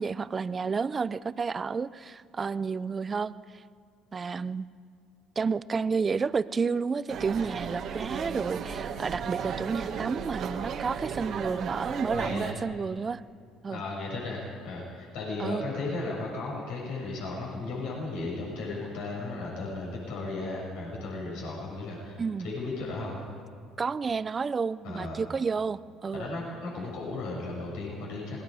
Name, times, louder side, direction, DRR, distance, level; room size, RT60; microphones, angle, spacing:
voice 1, 0.0-3.6 4.1-4.7 5.4-13.2 13.6-13.8 15.4-15.6 22.2-22.5 23.8-26.3, right 5 dB, 35° right, 17 dB, 0.6 m, -31 dB
sound 1, 7.1-12.5, right 7 dB, 60° right, 1.8 m, -35 dB
voice 2, 12.1-12.6 13.7-23.2 24.8-25.2 26.1-28.4, left 3 dB, 75° left, -3 dB, 6.5 m, -35 dB
26.5 x 20.0 x 5.0 m, 2.1 s
hypercardioid pair, 65°, 0 cm